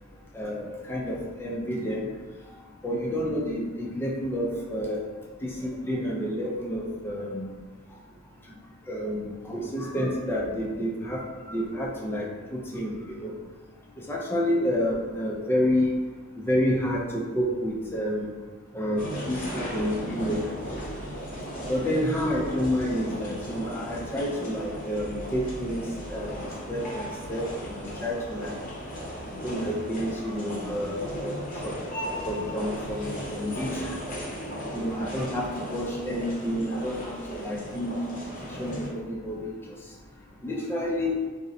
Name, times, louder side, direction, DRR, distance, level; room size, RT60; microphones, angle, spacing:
voice 1, 0.3-2.1 2.8-5.1 5.4-7.5 8.5-8.6 8.9-13.3 14.1-16.0 16.4-18.3 18.7-20.5 21.6-28.5 29.2-31.4 31.6-31.8 32.3-34.0 34.7-37.9 38.4-39.5 40.4-41.2, equal, 10° left, -2 dB, 0.3 m, -29 dB
sound 1, 19.0-38.9, equal, 40° left, 0.7 m, -36 dB
3.8 x 2.0 x 2.5 m, 1.3 s
head